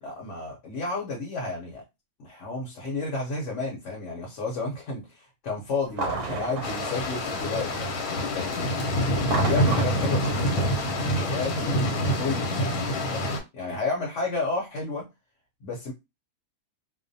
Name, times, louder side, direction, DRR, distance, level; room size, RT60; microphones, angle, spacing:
voice 1, 0.0-1.8 2.2-7.9 8.3-12.8 13.1-15.1 15.6-15.9, left 3 dB, 60° left, 0.9 m, -32 dB
sound 1, 5.9-8.1 9.1-11.7, right 4 dB, 90° right, 1.1 m, -34 dB
sound 2, 6.6-13.4, equal, 80° left, 1.1 m, -26 dB
2.4 x 2.1 x 2.6 m
omnidirectional pair, 1.5 m